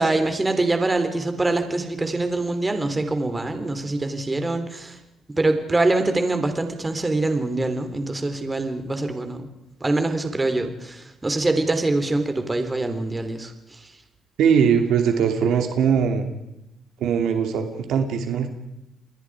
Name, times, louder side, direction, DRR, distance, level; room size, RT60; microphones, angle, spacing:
voice 1, 0.0-5.0 5.3-9.5 9.8-13.9, right 2 dB, 20° right, 7 dB, 3.7 m, -24 dB
voice 2, 14.4-16.3 17.0-18.5, right 7 dB, 80° right, 6 dB, 2.8 m, -20 dB
29.0 x 21.5 x 5.0 m, 0.89 s
cardioid pair, 90°, 0 cm